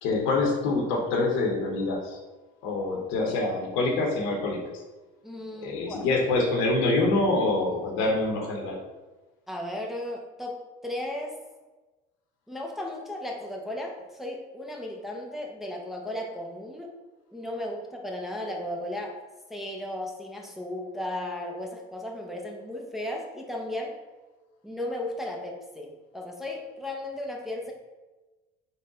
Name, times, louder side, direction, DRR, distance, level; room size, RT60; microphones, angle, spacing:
voice 1, 0.0-2.2 2.6-4.6 5.6-8.8, left 2 dB, 75° left, 0 dB, 0.8 m, -25 dB
voice 2, 5.2-6.1 9.5-11.4 12.5-16.9 17.3-19.2 19.5-24.0 24.6-27.7, left 1 dB, ahead, 0 dB, 0.5 m, -35 dB
3.9 x 2.1 x 3.8 m, 1.2 s
supercardioid pair, 100°, 21 cm